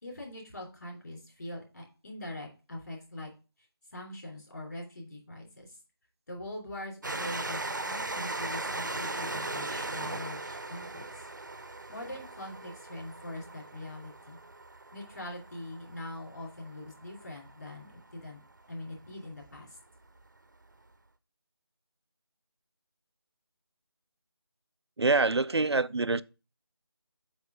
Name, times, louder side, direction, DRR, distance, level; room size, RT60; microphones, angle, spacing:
voice 1, 0.0-3.3 3.9-5.8 6.3-7.6 7.9-11.1 11.9-14.4 14.9-18.4 18.7-19.8, left 1 dB, 45° left, 3.2 m, -42 dB
Train, 7.0-18.2 18.9-19.0 19.2-19.3, right 2 dB, 50° right, 0.6 m, -38 dB
voice 2, 25.0-26.2, right 3 dB, 85° right, 0.4 m, -25 dB
8.0 x 3.2 x 6.2 m
figure-of-eight pair, 165°, 13 cm